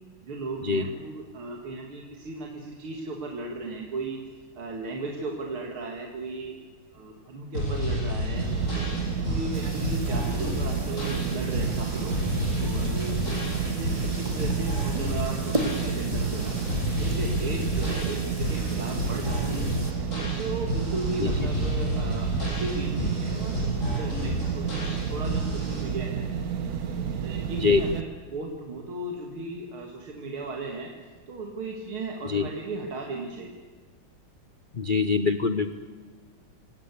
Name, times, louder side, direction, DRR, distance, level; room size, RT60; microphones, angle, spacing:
voice 1, 0.2-6.6 6.9-8.5 9.3-12.2 12.6-16.6 17.0-19.7 20.1-26.3 27.0-30.9 31.3-33.6, right 3 dB, 85° right, 1 dB, 3.0 m, -36 dB
sound 1, 7.5-25.8, left 1 dB, 35° left, 8.3 m, -31 dB
sound 2, 8.4-28.0, right 7 dB, 50° right, 1.5 m, -31 dB
sound 3, 9.5-19.9, right 1 dB, 15° right, 2.5 m, -38 dB
voice 2, 34.8-35.7, left 4 dB, 60° left, 10 dB, 0.5 m, -23 dB
27.0 x 18.0 x 8.4 m, 1.5 s
omnidirectional pair, 2.3 m